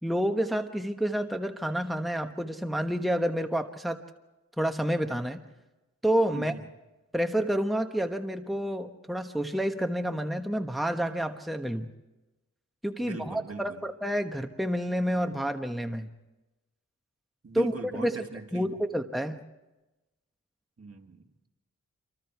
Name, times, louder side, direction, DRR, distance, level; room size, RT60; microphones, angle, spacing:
voice 1, 0.0-4.0 4.6-5.4 6.0-6.5 7.1-11.9 12.8-16.1 17.5-18.2 18.5-19.4, equal, ahead, 5 dB, 1.2 m, -29 dB
voice 2, 6.3-6.6 13.0-13.8 17.4-18.7 20.8-21.5, right 4 dB, 50° right, 4 dB, 2.2 m, -41 dB
27.0 x 25.0 x 4.6 m, 1.1 s
wide cardioid pair, 70°, 30 cm